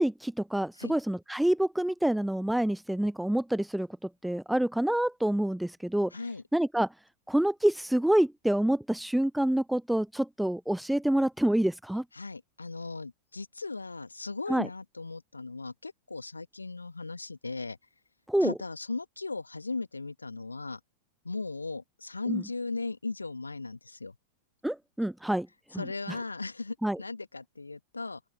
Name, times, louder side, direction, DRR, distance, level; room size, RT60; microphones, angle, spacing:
voice 1, 0.0-3.9 4.2-6.1 6.5-6.9 7.3-12.0 14.5-14.7 18.3-18.5 22.3-22.4 24.6-25.5 26.8-27.0, right 1 dB, 5° right, 0.4 m, -27 dB
voice 2, 6.1-6.4 12.1-17.8 18.4-20.8 21.2-24.2 25.7-28.2, left 3 dB, 80° left, 1.8 m, -37 dB
open air
figure-of-eight pair, 90°, 0 cm